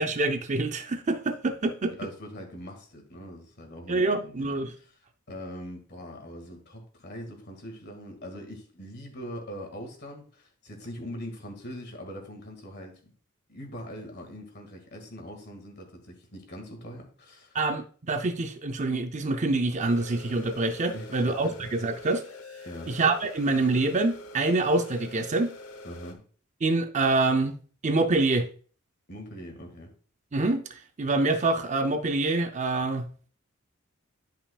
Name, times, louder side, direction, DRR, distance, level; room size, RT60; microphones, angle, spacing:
voice 1, 0.0-1.9 3.9-4.7 17.5-22.2 22.9-25.5 26.6-27.5 27.8-28.5 30.3-30.6 31.0-33.3, right 2 dB, 35° right, 0.6 m, -26 dB
voice 2, 1.5-5.0 5.3-13.1 13.5-17.6 20.9-21.6 22.6-23.0 25.8-26.2 29.1-29.9, equal, 50° left, 2.0 m, -42 dB
sound 1, 19.8-26.1, left 1 dB, 85° left, 1.0 m, -45 dB
11.0 x 5.5 x 2.4 m
head